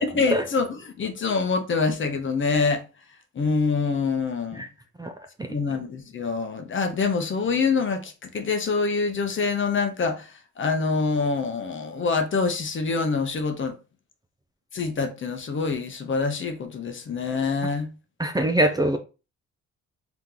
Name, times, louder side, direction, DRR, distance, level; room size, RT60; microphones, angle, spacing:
voice 1, 0.1-2.8 3.3-4.6 5.5-13.8 14.7-17.9, left 4 dB, 40° left, 0.8 m, -25 dB
voice 2, 18.2-19.0, right 1 dB, 15° right, 0.5 m, -23 dB
3.4 x 2.9 x 3.8 m
cardioid pair, 90°, 30 cm